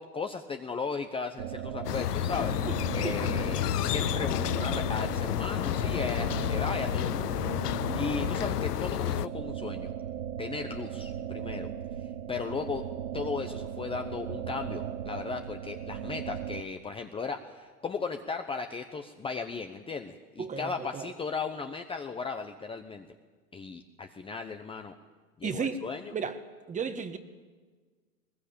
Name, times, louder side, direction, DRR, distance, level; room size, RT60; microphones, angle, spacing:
voice 1, 0.0-2.6 2.9-9.9 10.4-11.7 12.3-12.8 13.1-23.1 23.5-24.9 25.4-26.1, left 5 dB, 10° left, 0.9 m, -36 dB
sound 1, 1.4-16.6, right 9 dB, 75° right, 1.3 m, -37 dB
sound 2, 1.8-9.3, left 14 dB, 80° left, 0.6 m, -30 dB
voice 2, 2.7-3.3 20.4-21.1 25.4-25.8 26.1-26.4 26.7-27.2, right 5 dB, 15° right, 1.5 m, -34 dB
20.5 x 20.5 x 8.8 m
hypercardioid pair, 120°, 46 cm